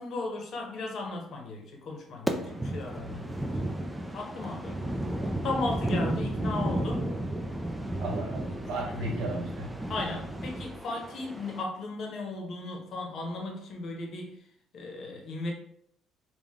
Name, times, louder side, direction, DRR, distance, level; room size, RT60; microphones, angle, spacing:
voice 1, 0.0-3.5 4.1-4.8 5.4-7.1 8.7-9.2 9.9-14.4 14.7-15.5, left 2 dB, 55° left, 1 dB, 0.9 m, -36 dB
sound 1, 2.3-11.6, right 1 dB, 10° right, 0.4 m, -33 dB
sound 2, 5.5-10.8, equal, 55° right, 0.5 m, -47 dB
voice 2, 8.0-9.7, right 1 dB, 90° right, 0 dB, 1.0 m, -34 dB
3.7 x 2.3 x 3.5 m, 0.71 s
cardioid pair, 110°, 0 cm